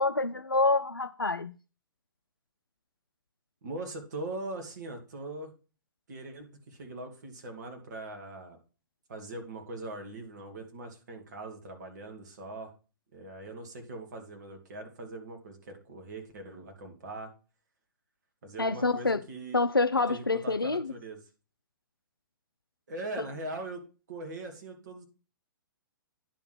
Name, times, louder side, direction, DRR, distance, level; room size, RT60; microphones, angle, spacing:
voice 1, 0.0-1.5 18.6-19.2 19.5-20.9, left 3 dB, 90° left, 0.4 m, -27 dB
voice 2, 3.6-5.5 6.1-8.6 9.1-12.7 13.1-17.3 18.4-19.6 20.1-21.2 22.9-23.8 24.1-25.0, right 2 dB, 55° right, 2.3 m, -41 dB
10.0 x 3.8 x 6.2 m
figure-of-eight pair, 115°, 12 cm